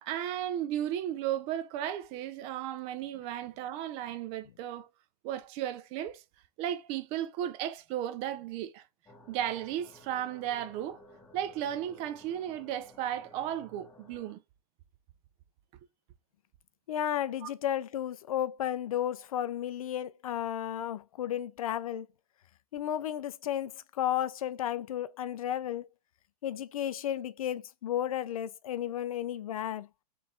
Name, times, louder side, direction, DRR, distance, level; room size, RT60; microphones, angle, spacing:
voice 1, 0.0-4.9 5.2-6.2 6.6-8.8 9.3-11.0 11.3-14.4 17.4-17.5, right 11 dB, 30° right, 0.5 m, -35 dB
sound 1, 9.1-14.4, left 1 dB, 10° left, 1.0 m, -56 dB
voice 2, 16.9-22.1 22.7-25.9 26.4-29.9, left 11 dB, 60° left, 0.5 m, -33 dB
3.8 x 3.2 x 3.7 m
hypercardioid pair, 120°, 21 cm